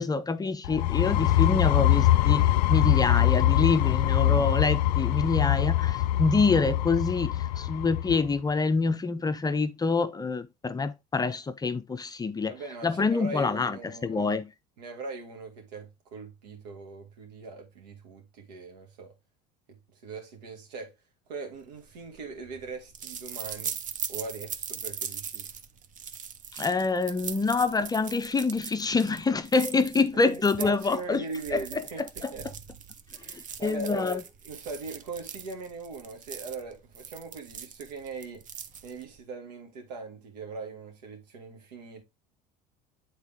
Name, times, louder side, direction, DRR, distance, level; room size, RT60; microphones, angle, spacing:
voice 1, 0.0-12.5 12.8-14.5 26.6-31.2 31.5-32.3 33.3-34.2, left 4 dB, 20° left, 0.6 m, -26 dB
sound 1, 0.6-8.3, left 13 dB, 80° left, 0.4 m, -23 dB
voice 2, 12.5-14.3 14.8-19.1 19.7-20.9 21.3-23.8 24.1-25.5 30.1-32.0 32.3-32.5 33.2-38.4 38.8-42.0, right 3 dB, 85° right, 2.1 m, -40 dB
sound 2, 21.7-39.2, right 7 dB, 40° right, 0.8 m, -40 dB
8.2 x 4.0 x 3.5 m
hypercardioid pair, 80°, 21 cm